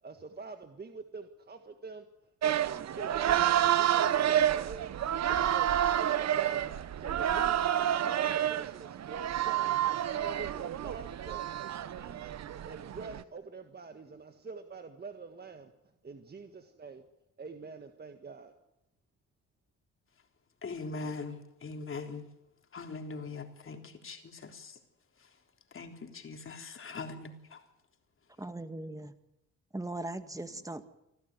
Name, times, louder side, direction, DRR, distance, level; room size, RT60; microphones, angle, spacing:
voice 1, 0.0-4.9 5.3-9.7 10.1-12.3 12.6-17.0 17.4-18.6, right 4 dB, 35° right, 1.7 m, -46 dB
sound 1, 2.4-13.2, right 11 dB, 60° right, 1.1 m, -29 dB
voice 2, 20.6-22.2 22.7-24.8 25.2-25.3 25.7-27.6, left 4 dB, 45° left, 3.7 m, -41 dB
voice 3, 28.4-29.1 29.7-30.8, right 2 dB, 10° right, 2.0 m, -39 dB
26.5 x 14.0 x 9.6 m
cardioid pair, 90°, 30 cm